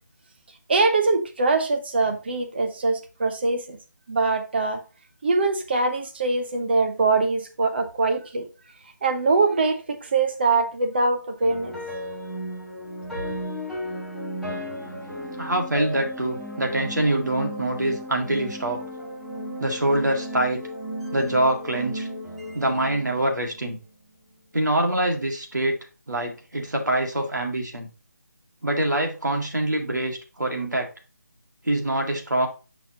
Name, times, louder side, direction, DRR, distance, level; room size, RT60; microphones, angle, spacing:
voice 1, 0.7-3.8 4.1-4.8 5.2-8.5 9.0-11.7, right 3 dB, 35° right, 1.0 m, -23 dB
sound 1, 11.4-23.7, equal, ahead, 0.9 m, -35 dB
voice 2, 15.4-18.8 19.6-20.6 21.1-22.1 22.5-23.8 24.5-25.8 26.1-27.9 28.6-30.9 31.6-32.5, right 1 dB, 75° right, 2.0 m, -24 dB
7.1 x 5.6 x 2.9 m
figure-of-eight pair, 155°, 10 cm